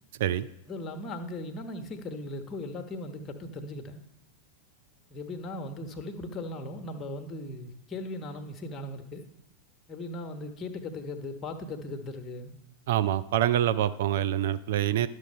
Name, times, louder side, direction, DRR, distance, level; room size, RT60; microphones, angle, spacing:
voice 1, 0.7-4.0 5.1-9.3 9.9-12.5, left 2 dB, 25° left, 6 dB, 1.1 m, -38 dB
voice 2, 12.9-15.1, right 11 dB, 55° right, 13 dB, 0.4 m, -26 dB
11.5 x 6.3 x 5.3 m, 0.84 s
figure-of-eight pair, 90°, 0 cm